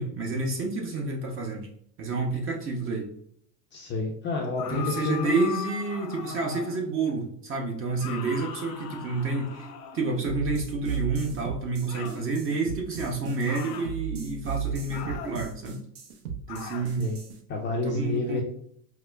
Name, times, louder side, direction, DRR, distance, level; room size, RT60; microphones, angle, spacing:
voice 1, 0.0-1.7 2.0-3.1 4.7-9.7 9.9-15.8 16.5-17.1 17.8-18.4, right 3 dB, 25° right, 2 dB, 0.7 m, -29 dB
voice 2, 3.7-5.5 17.0-17.2 17.5-18.4, left 3 dB, 25° left, -1 dB, 0.5 m, -29 dB
sound 1, 4.6-6.9 8.0-10.3 11.9-12.3 13.5-13.9 14.9-15.4 16.5-16.9, left 7 dB, 80° left, 0.9 m, -39 dB
sound 2, 10.2-17.3, right 8 dB, 65° right, 0.8 m, -35 dB
4.8 x 2.1 x 2.2 m, 0.64 s
hypercardioid pair, 115°, 48 cm